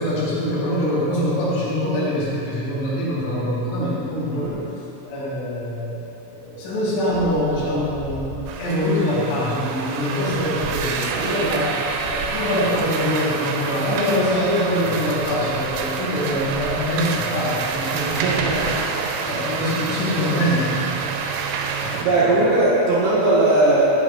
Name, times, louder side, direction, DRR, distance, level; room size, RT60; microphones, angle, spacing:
voice 1, 0.0-4.6 5.0-6.0 6.2-18.7 19.2-20.9 21.8-22.1, left 1 dB, 75° left, -8 dB, 4.0 m, -24 dB
sound 1, 8.5-22.0, right 5 dB, 90° right, 3.2 m, -27 dB
voice 2, 17.9-18.8 21.7-23.9, right 2 dB, 75° right, -8 dB, 2.6 m, -19 dB
8.7 x 8.2 x 2.4 m, 2.9 s
omnidirectional pair, 5.8 m